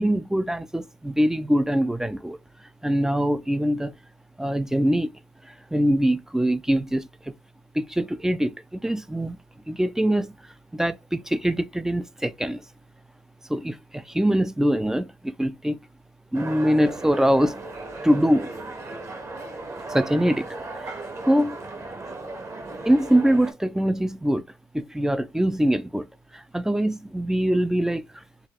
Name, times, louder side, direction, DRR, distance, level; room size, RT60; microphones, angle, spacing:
voice 1, 0.0-2.4 2.8-3.9 4.4-5.1 5.7-7.1 7.8-9.4 9.7-10.3 10.7-12.6 13.5-15.8 16.3-17.6 18.0-18.5 19.9-20.5 20.8-20.9 21.3-21.6 22.9-24.4 24.7-26.1 26.5-28.0, equal, 5° right, 0.3 m, -23 dB
sound 1, 16.3-23.5, right 2 dB, 40° right, 1.1 m, -36 dB
4.7 x 2.4 x 3.0 m
cardioid pair, 95°, 8 cm